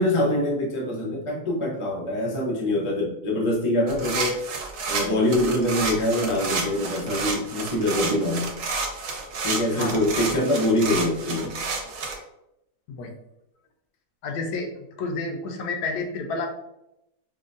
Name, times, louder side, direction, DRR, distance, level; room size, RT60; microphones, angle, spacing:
voice 1, 0.0-4.5 4.9-8.5 9.4-11.6, left 1 dB, 30° left, -3 dB, 0.6 m, -24 dB
sound 1, 3.9-12.1, right 4 dB, 80° right, 1.2 m, -30 dB
voice 2, 9.7-10.1 12.9-13.1 14.2-14.7 15.0-16.5, left 3 dB, 85° left, 3 dB, 1.2 m, -30 dB
5.2 x 2.1 x 2.6 m, 0.84 s
omnidirectional pair, 1.7 m